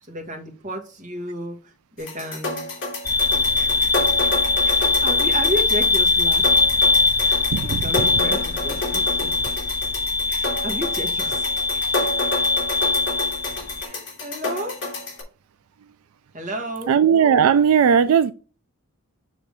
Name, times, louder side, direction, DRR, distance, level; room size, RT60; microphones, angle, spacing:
voice 1, 0.0-2.6 3.3-3.9 4.2-4.3 4.6-6.5 7.2-9.3 10.3-11.5 12.0-12.3 13.8-14.8 16.3-17.0, equal, 35° right, 1.7 m, -32 dB
sound 1, 2.0-15.2, left 2 dB, 60° left, 3.1 m, -30 dB
sound 2, 3.0-13.8, left 3 dB, 15° left, 0.4 m, -21 dB
voice 2, 16.9-18.3, right 7 dB, 75° right, 0.3 m, -16 dB
6.6 x 3.8 x 4.8 m
head